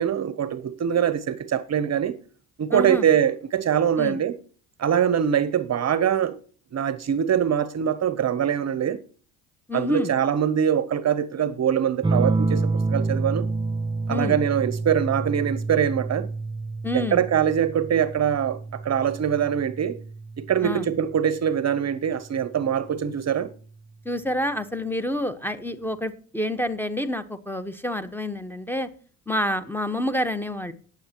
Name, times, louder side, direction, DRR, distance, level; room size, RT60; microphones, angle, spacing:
voice 1, 0.0-2.2 2.6-4.4 4.8-6.4 6.7-9.0 9.7-13.5 14.1-16.3 16.9-20.0 20.4-23.5, right 9 dB, 40° right, 0.8 m, -23 dB
voice 2, 2.7-3.1 4.0-4.2 9.7-10.1 14.1-14.4 16.8-17.2 20.6-20.9 24.0-28.9 29.3-30.7, left 1 dB, 5° left, 1.1 m, -28 dB
sound 1, 12.0-21.1 22.6-23.1, right 3 dB, 10° right, 0.4 m, -28 dB
19.0 x 7.5 x 3.0 m
hypercardioid pair, 60°, 40 cm